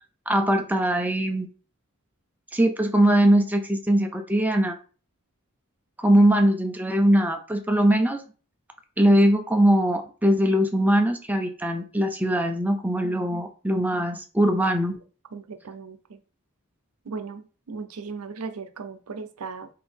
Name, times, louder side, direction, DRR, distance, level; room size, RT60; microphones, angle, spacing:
voice 1, 0.3-1.5 2.5-4.8 6.0-8.2 9.0-15.0, right 1 dB, 10° right, 5 dB, 0.5 m, -21 dB
voice 2, 13.0-13.4 15.3-16.2 17.0-19.7, right 4 dB, 80° right, 9 dB, 0.6 m, -37 dB
3.9 x 2.7 x 4.3 m, 0.37 s
head